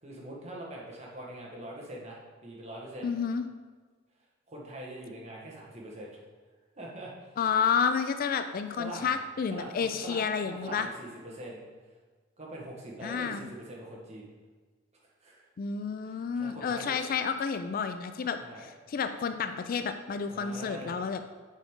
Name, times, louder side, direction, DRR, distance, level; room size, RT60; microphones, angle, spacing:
voice 1, 0.0-3.1 4.5-6.2 6.8-7.1 8.8-9.2 9.5-11.7 12.4-14.3 15.2-15.4 16.0-17.0 18.4-18.7 20.3-21.0, right 1 dB, 35° right, -3 dB, 1.4 m, -43 dB
voice 2, 3.0-3.5 7.4-10.9 13.0-13.5 15.6-21.4, left 6 dB, 45° left, 9 dB, 0.3 m, -30 dB
7.6 x 4.9 x 3.7 m, 1.4 s
head